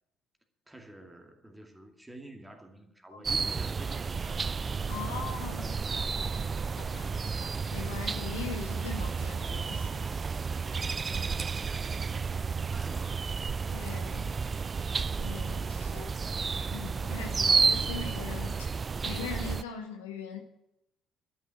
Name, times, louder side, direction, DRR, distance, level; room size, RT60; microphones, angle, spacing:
voice 1, 0.7-4.4 4.9-6.2 11.9-13.4, right 1 dB, 10° right, 2.3 m, -49 dB
sound 1, 3.2-19.6, right 5 dB, 30° right, 0.4 m, -31 dB
voice 2, 4.9-5.7 5.9-6.0 6.8-7.1 7.7-10.1 13.7-14.3 15.2-16.1 16.7-18.7 19.0-20.4, left 6 dB, 75° left, 1.6 m, -41 dB
12.5 x 7.1 x 9.1 m
figure-of-eight pair, 50°, 0 cm